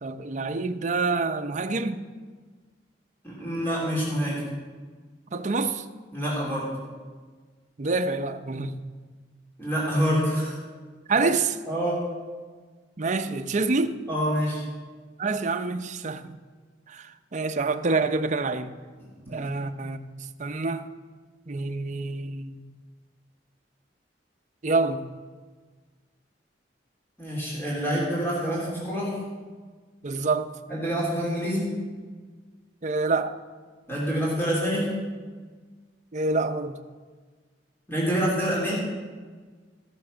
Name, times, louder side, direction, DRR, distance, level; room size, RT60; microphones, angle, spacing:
voice 1, 0.0-2.0 5.3-5.9 7.8-8.8 11.1-11.6 13.0-14.0 15.2-16.4 16.9-18.7 19.3-20.0 20.4-20.9 21.5-22.6 24.6-25.0 30.0-30.5 32.8-33.4 36.1-36.7, right 3 dB, 45° right, 0.6 m, -27 dB
voice 2, 3.2-4.4 6.1-6.7 9.6-10.6 11.7-12.0 14.1-14.6 19.3-19.4 27.2-29.2 30.7-31.7 33.9-34.9 37.9-38.7, equal, 15° left, 3.3 m, -26 dB
15.5 x 6.8 x 6.3 m
head